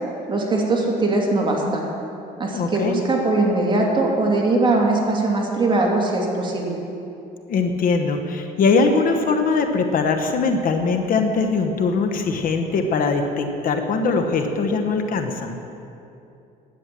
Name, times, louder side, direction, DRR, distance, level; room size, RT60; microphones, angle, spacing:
voice 1, 0.3-1.9 2.4-6.8, right 2 dB, 30° right, -1 dB, 2.5 m, -21 dB
voice 2, 2.5-2.9 7.5-15.6, left 4 dB, 55° left, 6 dB, 1.1 m, -21 dB
11.5 x 9.3 x 7.5 m, 2.7 s
cardioid pair, 110°, 17 cm